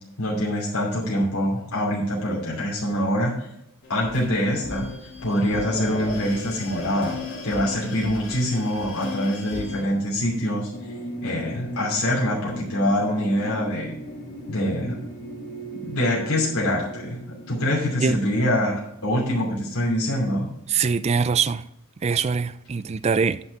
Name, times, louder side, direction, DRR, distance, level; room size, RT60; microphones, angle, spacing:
voice 1, 0.2-3.5 3.9-7.2 7.4-10.7 11.2-14.0 14.5-15.0 15.8-20.5, left 1 dB, 85° left, 2.7 m, -24 dB
sound 1, 3.8-9.8, left 3 dB, 60° left, 2.6 m, -36 dB
sound 2, 10.7-18.9, right 1 dB, 40° left, 1.8 m, -38 dB
voice 2, 20.7-21.6 22.0-23.4, right 5 dB, 30° right, 0.3 m, -23 dB
9.6 x 6.0 x 4.3 m
head